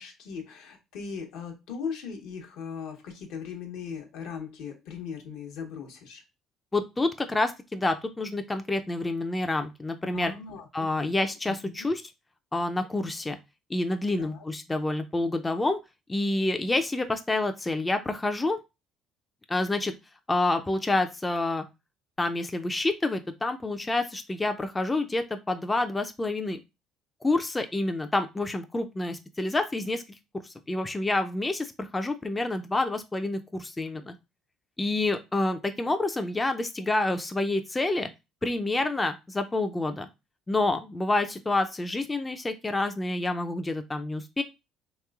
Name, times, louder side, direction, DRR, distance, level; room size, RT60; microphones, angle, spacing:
voice 1, 0.0-6.2 10.1-11.1 11.5-11.9 14.2-14.5, left 6 dB, 80° left, 2 dB, 0.8 m, -39 dB
voice 2, 6.7-10.3 10.7-12.0 12.5-13.4 13.7-15.8 16.1-18.6 19.5-19.9 20.3-21.6 22.2-26.6 27.2-30.0 30.4-34.1 34.8-38.1 38.4-40.1 40.5-44.4, left 2 dB, 20° left, 7 dB, 0.4 m, -28 dB
3.1 x 3.0 x 2.3 m, 0.25 s
supercardioid pair, 75°, 0 cm